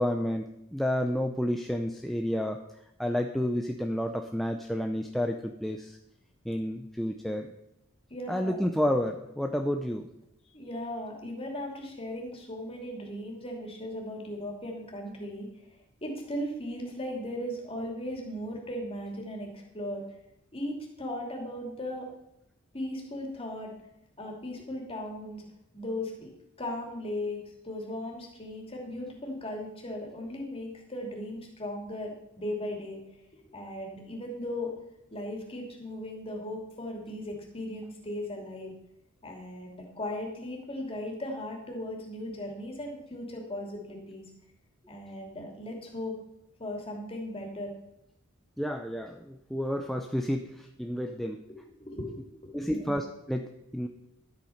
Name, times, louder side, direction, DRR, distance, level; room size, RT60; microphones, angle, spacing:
voice 1, 0.0-2.6 3.0-6.0 6.4-7.5 8.3-10.1 48.6-51.4 52.5-53.9, equal, ahead, 4 dB, 0.6 m, -30 dB
voice 2, 8.1-8.6 10.5-15.5 16.0-20.0 20.5-22.1 22.7-23.7 24.2-25.5 25.7-26.3 26.6-33.0 33.4-34.8 35.1-38.7 39.2-44.2 44.9-46.2 46.6-47.7 51.5-52.9, left 1 dB, 25° left, 0 dB, 2.8 m, -37 dB
12.5 x 8.5 x 5.8 m, 0.83 s
head